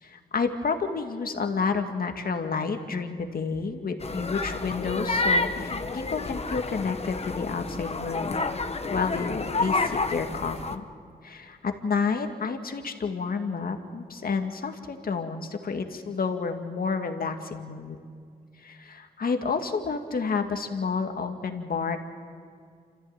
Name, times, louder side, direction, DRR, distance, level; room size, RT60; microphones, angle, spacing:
voice 1, 0.0-8.4 8.9-10.8 11.2-18.0 18.6-22.0, left 5 dB, 60° left, 5 dB, 2.1 m, -30 dB
sound 1, 4.0-10.8, left 3 dB, 35° left, 1.3 m, -29 dB
27.5 x 14.5 x 9.0 m, 2.2 s
cardioid pair, 65°, 17 cm